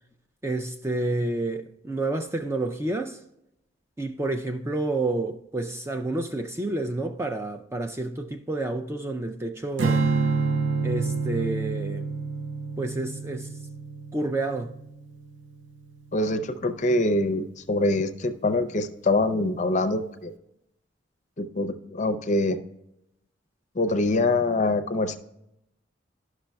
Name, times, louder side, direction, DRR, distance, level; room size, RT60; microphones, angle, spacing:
voice 1, 0.4-3.2 4.0-10.1 10.8-12.1 12.8-13.5 14.1-14.8, right 2 dB, 15° right, 0.3 m, -29 dB
Strum, 9.8-16.2, right 4 dB, 75° right, 0.6 m, -28 dB
voice 2, 16.1-20.3 21.4-22.6 23.8-25.2, left 2 dB, 40° left, 0.5 m, -24 dB
11.5 x 6.0 x 2.3 m
head